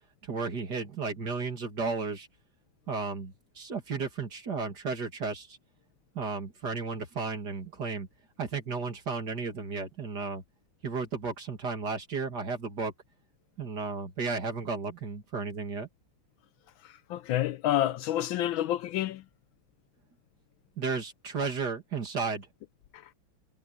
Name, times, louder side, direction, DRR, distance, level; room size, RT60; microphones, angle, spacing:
voice 1, 0.2-2.3 2.9-5.6 6.1-8.1 8.4-10.4 10.8-12.9 13.6-15.9 20.8-22.5, right 4 dB, 50° right, 3.0 m, -33 dB
voice 2, 17.1-19.2, left 13 dB, 75° left, 1.3 m, -28 dB
omnidirectional pair, 2.3 m